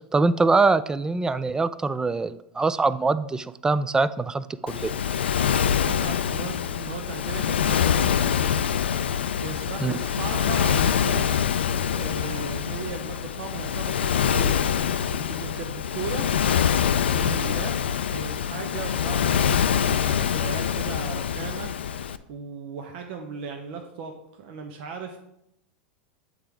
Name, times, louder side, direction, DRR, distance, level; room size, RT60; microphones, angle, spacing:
voice 1, 0.1-4.9 9.8-10.0, right 3 dB, 10° right, 15 dB, 0.3 m, -23 dB
Waves surf, 4.7-22.2, left 8 dB, 85° left, 0.4 m, -25 dB
voice 2, 5.9-8.4 9.4-11.4 11.9-14.6 15.1-16.3 17.1-17.8 18.1-21.7 22.3-25.2, right 5 dB, 60° right, 3 dB, 0.8 m, -37 dB
8.0 x 3.8 x 4.6 m, 0.80 s
hypercardioid pair, 95°, 6 cm